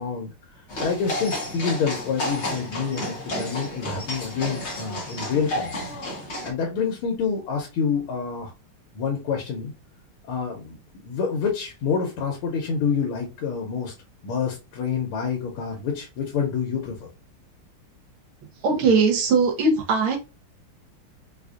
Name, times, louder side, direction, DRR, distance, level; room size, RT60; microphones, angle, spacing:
voice 1, 0.0-5.7 6.4-8.5 8.9-9.7 10.3-10.8 11.0-13.9 14.2-17.1, left 6 dB, 85° left, 0 dB, 1.6 m, -27 dB
sound 1, 0.7-6.5, left 1 dB, 45° left, 1.0 m, -31 dB
voice 2, 18.6-20.2, right 4 dB, 75° right, 3 dB, 1.7 m, -20 dB
4.6 x 2.5 x 2.4 m, 0.28 s
omnidirectional pair, 2.4 m